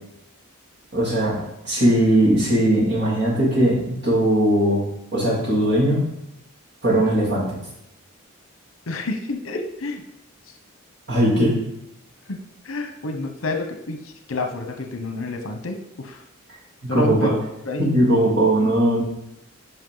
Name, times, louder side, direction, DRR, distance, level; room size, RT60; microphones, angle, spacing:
voice 1, 0.9-1.3 1.6-4.8 5.1-6.0 6.8-7.6 11.1-11.6 16.9-17.3 17.8-19.0, right 1 dB, 50° right, -5 dB, 3.3 m, -19 dB
voice 2, 8.9-10.0 10.5-10.6 12.3-12.4 12.6-16.2 16.9-17.3 17.6-17.8, left 2 dB, 75° left, 5 dB, 0.9 m, -29 dB
10.5 x 5.5 x 4.0 m, 0.81 s
head